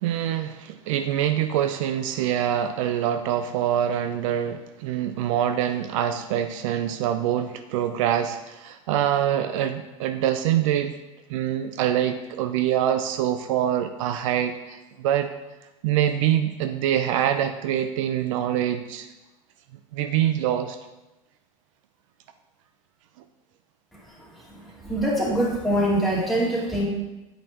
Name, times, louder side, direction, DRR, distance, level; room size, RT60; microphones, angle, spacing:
voice 1, 0.0-10.9 11.3-15.3 15.8-19.1 19.9-20.8, right 10 dB, 65° right, 8 dB, 0.4 m, -25 dB
voice 2, 24.8-26.9, right 1 dB, ahead, -5 dB, 2.1 m, -23 dB
7.8 x 5.2 x 2.9 m, 1.0 s
hypercardioid pair, 90°, 17 cm